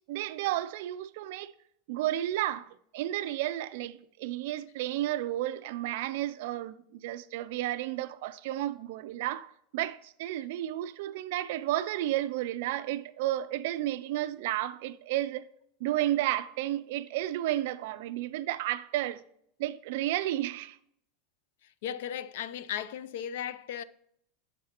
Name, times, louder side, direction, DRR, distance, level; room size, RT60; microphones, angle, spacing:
voice 1, 0.1-1.5 1.9-15.5 15.8-19.2 19.6-20.8, right 14 dB, 60° right, 0.4 m, -32 dB
voice 2, 21.8-23.8, left 9 dB, 65° left, 0.4 m, -36 dB
8.7 x 7.2 x 2.9 m
supercardioid pair, 175°, 0 cm